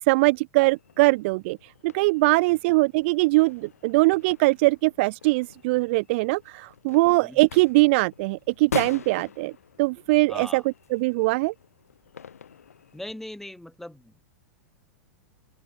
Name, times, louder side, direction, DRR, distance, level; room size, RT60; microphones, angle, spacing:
voice 1, 0.1-1.6 1.8-9.5 9.8-10.6 10.9-11.5, right 24 dB, 50° right, 0.7 m, -21 dB
sound 1, 0.6-13.1, left 7 dB, 75° left, 7.4 m, -43 dB
voice 2, 7.0-7.4 10.3-10.6 12.9-14.3, left 1 dB, 5° left, 6.0 m, -40 dB
open air
hypercardioid pair, 100°, 8 cm